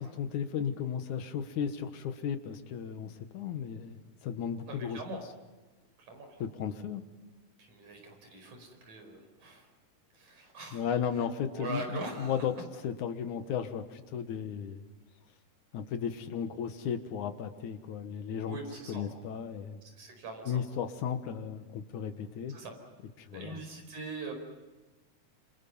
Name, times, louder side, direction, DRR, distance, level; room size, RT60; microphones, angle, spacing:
voice 1, 0.2-5.0 6.4-7.1 10.7-12.5 12.8-14.8 15.7-18.6 18.9-19.8 20.5-22.5 23.2-23.6, left 8 dB, 80° left, 8 dB, 2.8 m, -35 dB
voice 2, 4.7-5.2 6.0-6.3 7.6-9.7 10.1-10.9 11.5-12.4 18.5-19.0 19.9-20.6 22.5-22.7 23.3-24.3, right 3 dB, 70° right, 4 dB, 6.2 m, -42 dB
27.5 x 27.0 x 5.5 m, 1.2 s
omnidirectional pair, 3.4 m